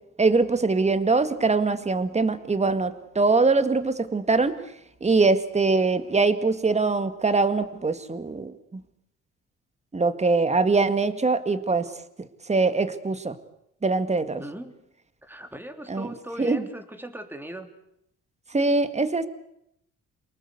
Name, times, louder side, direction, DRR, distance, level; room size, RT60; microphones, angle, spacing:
voice 1, 0.2-4.6 5.0-8.5 9.9-11.9 12.5-13.4 13.8-14.4 15.9-16.1 16.4-16.7 18.5-19.3, right 3 dB, 20° right, 11 dB, 2.0 m, -22 dB
voice 2, 14.4-14.7 15.2-17.7, right 1 dB, 5° right, 7 dB, 3.3 m, -39 dB
28.0 x 19.5 x 8.3 m, 0.78 s
cardioid pair, 90°, 30 cm